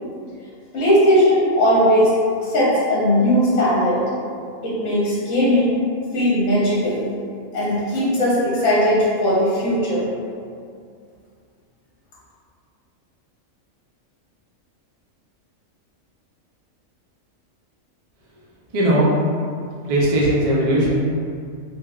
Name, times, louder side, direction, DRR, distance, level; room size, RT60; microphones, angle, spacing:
voice 1, 0.7-2.1 2.5-4.0 4.6-5.8 6.1-7.0 7.5-10.1, equal, 75° left, -8 dB, 1.2 m, -18 dB
voice 2, 18.7-19.1 19.8-21.0, right 1 dB, 60° right, -6 dB, 0.3 m, -18 dB
3.1 x 3.0 x 2.3 m, 2.3 s
omnidirectional pair, 1.4 m